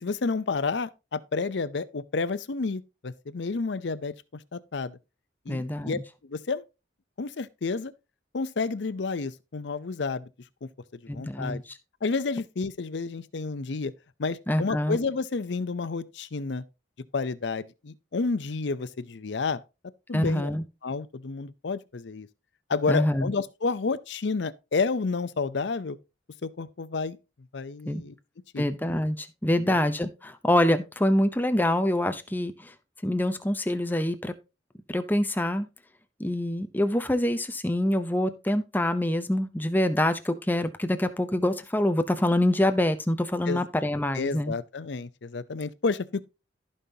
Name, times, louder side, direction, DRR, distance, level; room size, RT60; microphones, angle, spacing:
voice 1, 0.0-4.1 4.5-5.0 5.5-6.0 6.3-6.6 7.2-7.9 8.3-10.3 10.6-10.7 11.0-11.6 12.0-13.9 14.2-16.6 17.1-19.6 20.1-20.5 20.8-22.3 22.7-26.0 26.4-27.2 27.5-28.1 28.5-28.7 29.6-29.8 43.5-43.6 44.1-46.3, left 4 dB, 70° left, 0.6 m, -30 dB
voice 2, 5.5-6.0 11.1-11.6 14.5-15.0 20.1-20.6 22.9-23.3 27.9-28.0 28.6-32.7 33.0-34.3 34.9-35.7 36.2-44.5, left 1 dB, 10° left, 0.7 m, -25 dB
15.0 x 5.5 x 2.8 m
head